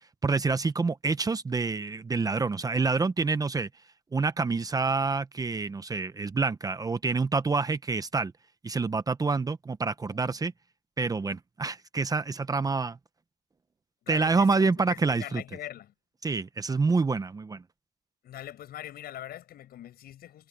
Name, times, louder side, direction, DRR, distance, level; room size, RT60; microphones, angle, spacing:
voice 1, 0.2-3.7 4.1-8.3 8.6-10.5 11.0-13.0 14.1-15.4 16.2-17.6, right 4 dB, 20° right, 0.9 m, -27 dB
voice 2, 14.0-15.9 18.2-20.5, left 12 dB, 65° left, 7.2 m, -42 dB
cardioid pair, 110°, 17 cm